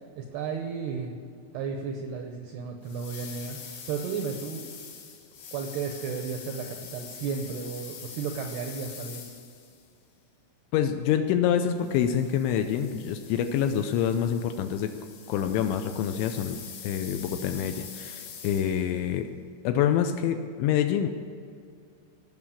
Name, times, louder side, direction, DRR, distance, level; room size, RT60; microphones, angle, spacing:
voice 1, 0.2-1.2 1.5-4.7 5.5-9.3, right 6 dB, 80° right, 3 dB, 2.4 m, -34 dB
sound 1, 2.8-9.9 11.7-19.0, left 7 dB, 65° left, 3.7 m, -44 dB
voice 2, 10.7-14.9 15.3-19.3 19.6-21.1, left 9 dB, 80° left, 7 dB, 2.8 m, -26 dB
17.5 x 6.3 x 8.4 m, 2.4 s
omnidirectional pair, 5.7 m